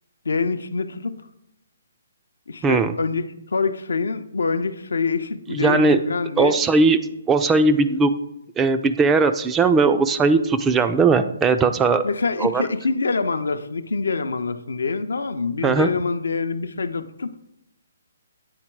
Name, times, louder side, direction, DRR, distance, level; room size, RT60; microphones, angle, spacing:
voice 1, 0.3-1.1 2.5-3.2 3.5-6.6 12.0-17.3, left 4 dB, 85° left, 9 dB, 0.5 m, -25 dB
voice 2, 2.6-2.9 5.5-6.0 6.4-7.0 7.3-8.1 8.6-12.0 12.4-12.6 15.6-15.9, right 4 dB, 10° right, 10 dB, 0.3 m, -18 dB
8.7 x 3.7 x 4.5 m, 0.83 s
hypercardioid pair, 150°, 0 cm